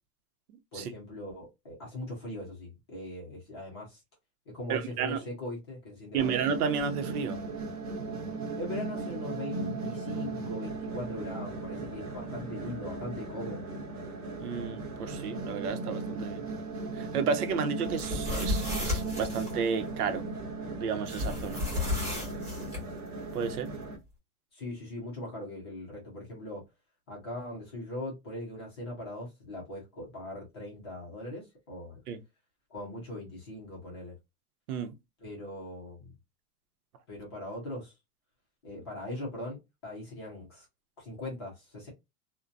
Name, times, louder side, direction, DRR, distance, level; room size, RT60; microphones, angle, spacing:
voice 1, 0.7-4.0 4.5-6.3 8.5-13.7 24.5-26.6 27.1-32.0 32.7-34.1 35.2-36.1 37.1-37.9 38.6-40.7 41.0-41.9, left 1 dB, 20° left, 0.5 m, -40 dB
voice 2, 4.7-5.2 6.1-7.4 14.4-16.4 16.9-20.2 20.7-21.6 23.3-23.7 32.1-32.2 34.7-34.9, right 6 dB, 85° right, 0.7 m, -32 dB
sound 1, 6.2-24.0, right 3 dB, 25° right, 0.6 m, -37 dB
sound 2, 17.8-19.5 21.1-22.8, left 2 dB, 5° right, 1.0 m, -33 dB
2.6 x 2.1 x 2.4 m
supercardioid pair, 180°, 43 cm